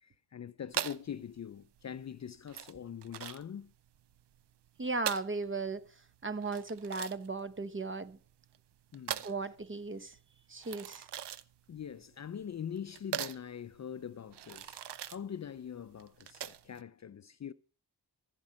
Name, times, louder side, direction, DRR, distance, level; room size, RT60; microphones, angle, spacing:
voice 1, 0.0-3.7 8.9-9.3 11.7-14.8 15.1-17.5, left 8 dB, 45° left, 0.4 m, -43 dB
sound 1, 0.7-16.8, right 10 dB, 90° right, 0.6 m, -42 dB
voice 2, 4.8-5.9 6.2-8.2 9.2-10.2 10.5-11.1, right 3 dB, 30° right, 0.8 m, -36 dB
14.5 x 5.3 x 7.5 m
cardioid pair, 70°, 40 cm